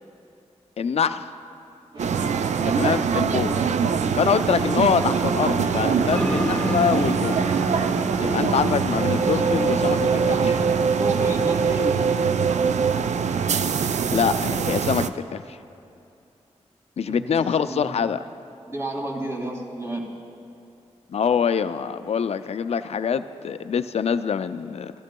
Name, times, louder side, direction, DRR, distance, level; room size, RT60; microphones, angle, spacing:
voice 1, 0.8-1.3 2.8-3.6 4.1-7.4 8.2-10.5 14.1-15.6 17.0-18.2 21.1-24.9, left 7 dB, 60° left, 12 dB, 0.4 m, -24 dB
sound 1, 1.9-10.7, right 2 dB, 40° right, 1.0 m, -34 dB
sound 2, 2.0-15.1, right 6 dB, 70° right, 0.4 m, -23 dB
sound 3, 6.1-11.4, left 1 dB, 10° left, 1.3 m, -31 dB
voice 2, 11.0-12.2 17.1-17.4 17.6-17.9 18.7-20.1, right 1 dB, 20° right, -1 dB, 2.1 m, -31 dB
14.5 x 12.5 x 2.3 m, 2.6 s
cardioid pair, 40°, 12 cm